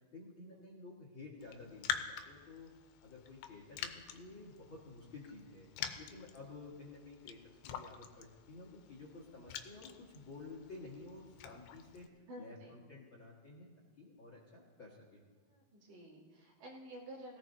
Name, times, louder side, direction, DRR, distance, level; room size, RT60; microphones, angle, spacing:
voice 1, 0.1-2.7 3.0-13.7 14.0-15.2, left 3 dB, 50° left, -4 dB, 1.5 m, -52 dB
Raindrop, 1.4-12.1, left 9 dB, 80° left, 2.7 m, -46 dB
voice 2, 12.3-12.8 15.5-17.4, right 1 dB, 90° right, -4 dB, 5.0 m, -51 dB
18.0 x 16.5 x 2.7 m, 1.4 s
omnidirectional pair, 4.9 m